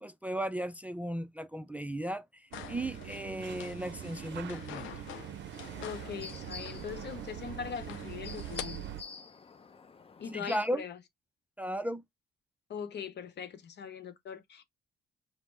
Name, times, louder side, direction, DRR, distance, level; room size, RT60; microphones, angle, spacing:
voice 1, 0.0-4.9 10.3-10.8 11.6-12.0, equal, 5° right, 0.4 m, -35 dB
sound 1, 2.5-8.6, left 12 dB, 85° left, 0.5 m, -47 dB
sound 2, 2.5-9.0, right 11 dB, 65° right, 0.5 m, -43 dB
sound 3, 5.5-10.7, left 4 dB, 30° left, 0.7 m, -49 dB
voice 2, 5.8-8.9 10.2-11.0 12.7-14.6, left 7 dB, 60° left, 0.9 m, -41 dB
5.2 x 2.1 x 4.5 m
cardioid pair, 90°, 20 cm